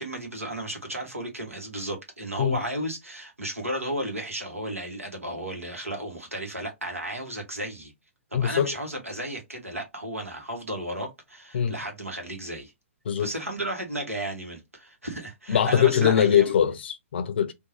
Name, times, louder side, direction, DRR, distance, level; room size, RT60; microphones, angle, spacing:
voice 1, 0.0-7.9 8.3-12.7 13.2-16.5, right 1 dB, 85° right, 1.3 m, -33 dB
voice 2, 8.3-8.8 11.5-11.7 13.1-13.3 15.5-17.5, left 9 dB, 50° left, 0.5 m, -22 dB
3.7 x 2.5 x 2.7 m
figure-of-eight pair, 120°, 7 cm